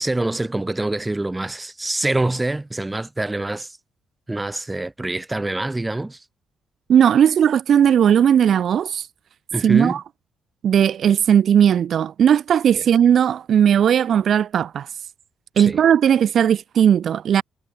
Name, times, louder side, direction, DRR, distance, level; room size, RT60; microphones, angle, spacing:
voice 1, 0.0-3.8 4.3-6.2 9.5-10.0 12.8-12.9 15.6-15.8, right 2 dB, 15° right, 3.9 m, -25 dB
voice 2, 6.9-9.1 9.6-10.0 10.6-14.9 15.6-17.4, right 9 dB, 60° right, 0.3 m, -17 dB
cardioid pair, 90°, 0 cm